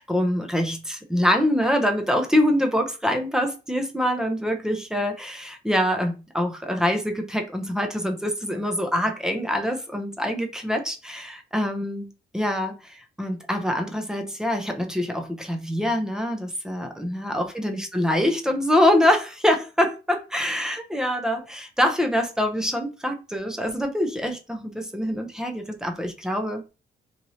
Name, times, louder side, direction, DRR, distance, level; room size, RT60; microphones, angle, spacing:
voice 1, 0.0-26.6, left 1 dB, 5° right, 0.6 m, -25 dB
3.1 x 2.6 x 2.7 m
cardioid pair, 90°, 20 cm